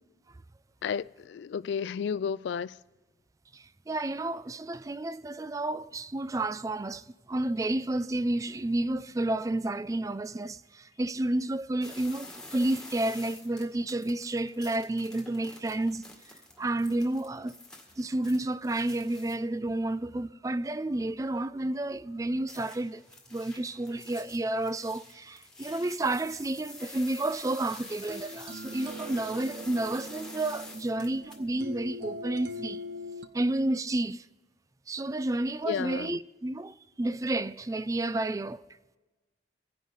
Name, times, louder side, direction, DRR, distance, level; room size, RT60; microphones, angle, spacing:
voice 1, 0.8-2.7 35.7-36.2, left 7 dB, 80° left, 0.3 m, -32 dB
voice 2, 3.5-16.1 16.6-17.5 18.0-23.0 23.3-32.8 33.3-34.2 34.9-38.6, right 2 dB, 20° right, 0.3 m, -31 dB
sound 1, 11.8-19.3 22.5-31.4, left 2 dB, 5° left, 1.9 m, -48 dB
sound 2, 28.1-33.3, left 1 dB, 75° right, 0.8 m, -42 dB
24.5 x 10.5 x 4.0 m
head